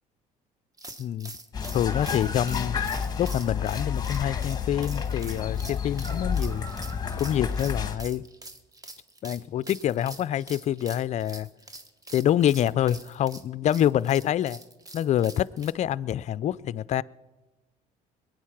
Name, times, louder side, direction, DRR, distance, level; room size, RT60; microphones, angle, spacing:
sound 1, 0.8-15.7, right 2 dB, 20° right, 1.3 m, -45 dB
voice 1, 1.0-1.3 1.7-2.9 3.2-6.6 7.2-8.2 9.2-11.5 12.1-14.6 14.9-17.0, left 11 dB, 45° left, 18 dB, 0.4 m, -26 dB
sound 2, 1.5-8.0, left 6 dB, 25° left, 1.5 m, -30 dB
21.5 x 9.2 x 5.9 m, 1.1 s
cardioid pair, 100°, 16 cm